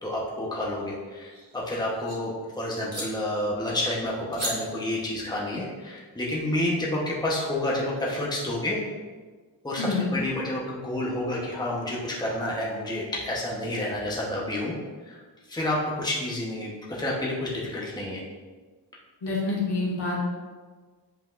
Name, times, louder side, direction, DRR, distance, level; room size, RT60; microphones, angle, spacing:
voice 1, 0.0-8.8 9.6-14.7 15.0-15.2 15.5-18.2, left 1 dB, 10° left, -4 dB, 1.0 m, -29 dB
sound 1, 1.0-2.2 2.9-3.1 4.3-4.5, right 1 dB, 35° right, 1.8 m, -35 dB
voice 2, 9.8-10.1 19.2-20.2, left 3 dB, 70° left, -4 dB, 1.8 m, -27 dB
8.2 x 5.0 x 2.5 m, 1.4 s
wide cardioid pair, 100°, 42 cm